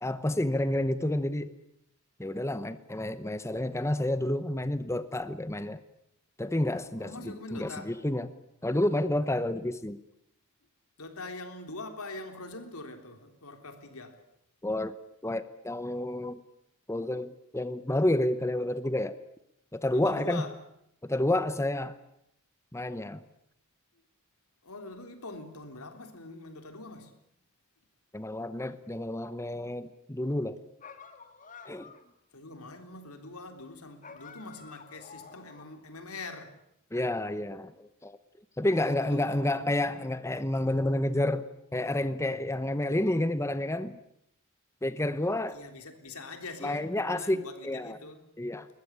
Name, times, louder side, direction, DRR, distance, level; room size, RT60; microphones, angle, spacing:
voice 1, 0.0-1.5 2.2-5.8 6.4-8.3 8.6-10.0 14.6-14.9 15.2-16.4 16.9-19.2 19.7-20.4 21.0-22.0 22.7-23.2 28.1-30.6 31.7-31.9 36.9-37.7 38.0-38.2 38.6-41.4 41.7-44.0 44.8-45.6 46.6-48.0 48.4-48.7, left 1 dB, 15° left, 0.9 m, -29 dB
voice 2, 7.0-8.0 11.0-14.2 19.9-20.6 24.6-27.1 32.3-36.6 38.7-39.7 45.5-48.2, left 2 dB, 85° left, 3.6 m, -43 dB
sound 1, 30.8-32.1 34.0-35.8, left 5 dB, 35° left, 2.4 m, -50 dB
21.5 x 20.5 x 9.9 m
head